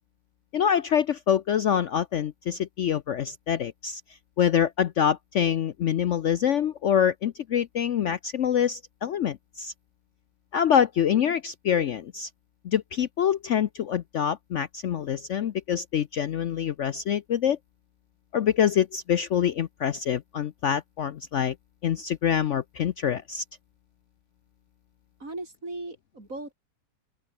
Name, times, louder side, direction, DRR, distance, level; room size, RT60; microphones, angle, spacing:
voice 1, 0.5-4.0 4.4-9.7 10.5-12.3 12.6-17.6 18.3-21.5 21.8-23.4, left 9 dB, 60° left, 0.9 m, -25 dB
voice 2, 25.2-26.5, right 2 dB, 55° right, 6.2 m, -37 dB
open air
omnidirectional pair, 1.7 m